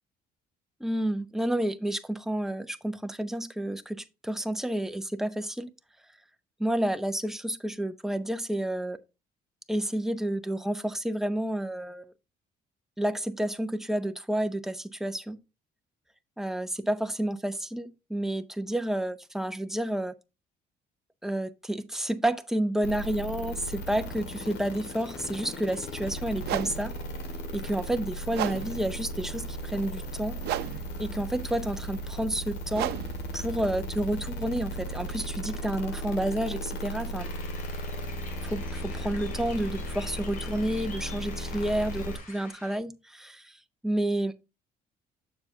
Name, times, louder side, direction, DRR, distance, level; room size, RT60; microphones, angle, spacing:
voice 1, 0.8-5.7 6.6-9.0 9.7-12.1 13.0-15.4 16.4-20.1 21.2-27.0 27.5-30.4 31.0-32.9 33.3-37.3 38.4-43.5 43.8-44.3, right 1 dB, ahead, 0.6 m, -30 dB
sound 1, 22.8-42.2, equal, 80° left, 1.9 m, -36 dB
sound 2, 25.6-25.8 26.4-35.2, right 13 dB, 75° right, 0.6 m, -37 dB
sound 3, 37.2-42.8, left 4 dB, 55° left, 3.3 m, -47 dB
7.0 x 6.7 x 2.7 m
cardioid pair, 110°, 17 cm